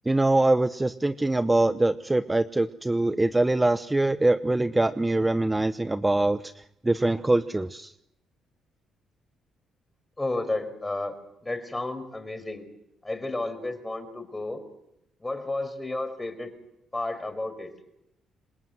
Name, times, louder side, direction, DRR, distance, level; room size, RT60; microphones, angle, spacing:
voice 1, 0.1-6.4 6.8-7.9, right 2 dB, 15° right, 11 dB, 0.9 m, -23 dB
voice 2, 10.2-11.2 11.4-12.7 13.0-14.6 15.2-16.5 16.9-17.7, left 2 dB, 15° left, 9 dB, 5.3 m, -32 dB
27.0 x 20.5 x 7.8 m, 0.81 s
cardioid pair, 90°, 0 cm